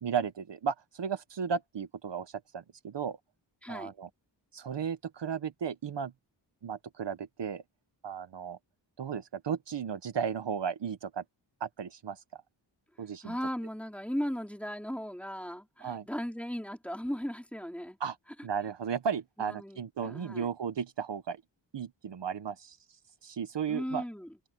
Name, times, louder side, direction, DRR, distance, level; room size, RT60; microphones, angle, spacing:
voice 1, 0.0-3.2 3.7-4.1 4.5-6.1 6.6-7.6 8.0-8.6 9.0-11.2 11.6-12.2 13.0-13.3 15.8-16.1 18.0-18.2 18.4-21.4 21.7-22.8 23.2-24.0, right 7 dB, 70° right, 1.1 m, -34 dB
voice 2, 3.6-3.9 13.2-18.0 19.4-20.5 23.7-24.3, equal, 5° left, 4.7 m, -37 dB
wide cardioid pair, 130°, 45 cm